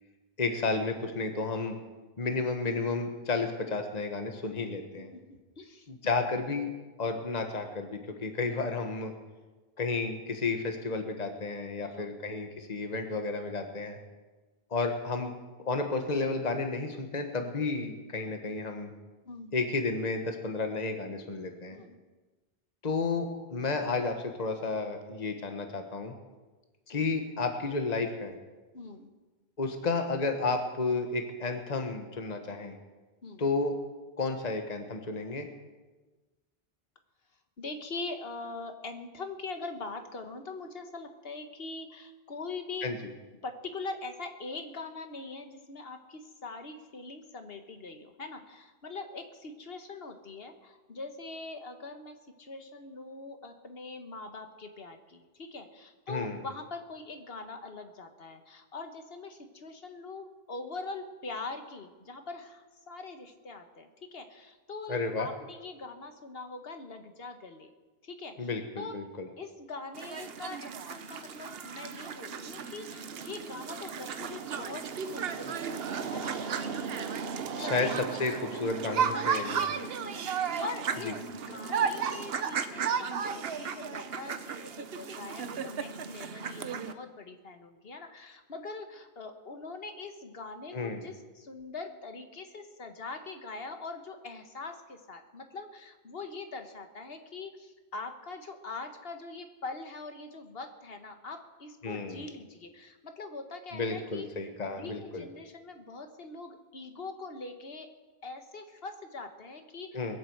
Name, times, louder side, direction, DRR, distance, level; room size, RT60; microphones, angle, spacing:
voice 1, 0.4-1.8 2.2-5.1 5.9-6.7 7.0-9.1 9.8-14.0 14.7-15.3 15.6-18.9 19.5-21.8 22.8-26.1 26.9-28.3 29.6-32.8 33.4-33.8 34.2-35.5 42.8-43.0 56.1-56.4 64.9-65.3 68.4-69.3 77.6-77.9 78.2-79.6 81.0-81.1 90.7-91.0 101.8-102.2 103.7-105.2 109.9-110.2, left 3 dB, 40° left, 5 dB, 1.4 m, -32 dB
voice 2, 5.6-5.9 11.8-12.2 17.4-17.7 19.2-19.5 21.7-22.0 26.9-27.0 28.7-29.1 32.5-32.6 33.2-33.4 37.6-42.9 43.4-67.7 68.0-69.0 69.4-78.1 79.1-79.3 79.6-104.3 104.7-107.9 108.2-110.0, left 3 dB, 70° left, 7 dB, 1.6 m, -43 dB
sound 1, 70.0-86.9, right 6 dB, 70° right, 1.0 m, -34 dB
21.5 x 7.9 x 7.9 m, 1.2 s
omnidirectional pair, 1.0 m